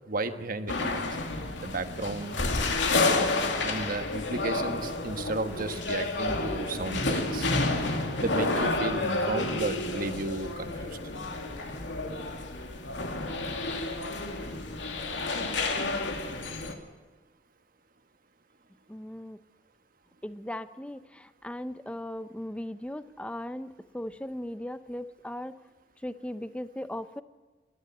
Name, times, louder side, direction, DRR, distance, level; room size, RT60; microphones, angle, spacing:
voice 1, 0.1-1.1 1.6-2.4 3.6-7.5 8.2-11.0, right 2 dB, 50° right, 9 dB, 1.3 m, -33 dB
sound 1, 0.7-16.7, left 2 dB, 80° left, 2.5 m, -30 dB
voice 2, 18.9-19.4 20.2-25.6 26.0-27.2, left 1 dB, 5° left, 13 dB, 0.6 m, -38 dB
26.5 x 11.0 x 9.1 m, 1.4 s
head